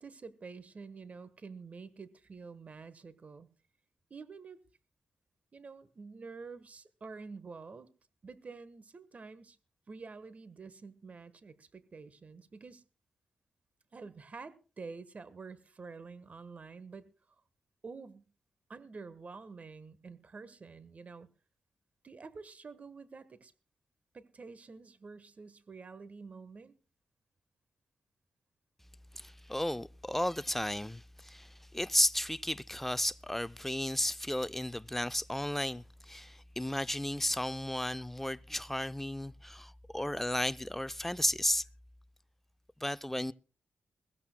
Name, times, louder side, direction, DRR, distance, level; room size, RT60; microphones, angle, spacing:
voice 1, 0.0-3.5 4.1-4.6 5.5-7.9 8.2-9.6 9.9-12.8 13.9-17.1 17.8-18.3 18.7-21.3 22.0-23.5 24.1-26.7, right 4 dB, 50° right, 1.3 m, -48 dB
voice 2, 29.1-41.7 42.8-43.3, left 1 dB, 5° left, 0.6 m, -34 dB
21.5 x 15.5 x 2.3 m
supercardioid pair, 50°, 3 cm